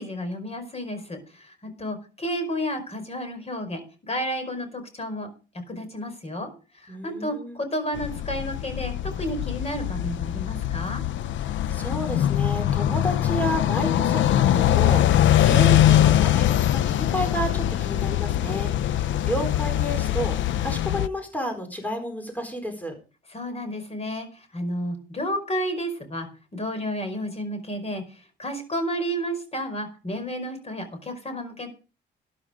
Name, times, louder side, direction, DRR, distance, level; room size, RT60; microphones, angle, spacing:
voice 1, 0.0-5.3 5.7-11.0 23.3-31.7, equal, 30° left, 9 dB, 5.0 m, -31 dB
voice 2, 6.9-7.6 11.7-23.0, equal, 10° left, 5 dB, 4.3 m, -31 dB
sound 1, 8.0-21.1, left 12 dB, 70° left, 0.6 m, -22 dB
13.0 x 10.5 x 5.1 m, 0.35 s
cardioid pair, 90°, 20 cm